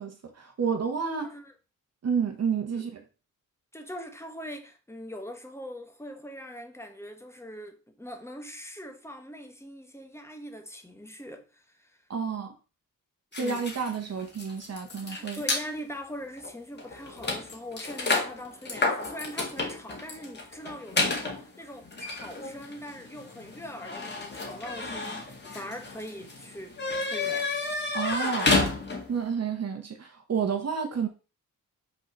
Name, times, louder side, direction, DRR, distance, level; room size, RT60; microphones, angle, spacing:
voice 1, 0.0-1.3 2.0-3.0 12.1-12.5 13.3-15.4 27.9-28.6 29.1-31.1, right 6 dB, 50° right, 1.5 m, -30 dB
voice 2, 3.7-12.0 13.4-13.7 15.1-27.5, equal, 10° left, 1.2 m, -42 dB
sound 1, 13.3-15.7 16.4-16.5 16.8-29.2, left 3 dB, 30° left, 2.0 m, -31 dB
5.9 x 4.2 x 6.0 m
wide cardioid pair, 135°, 33 cm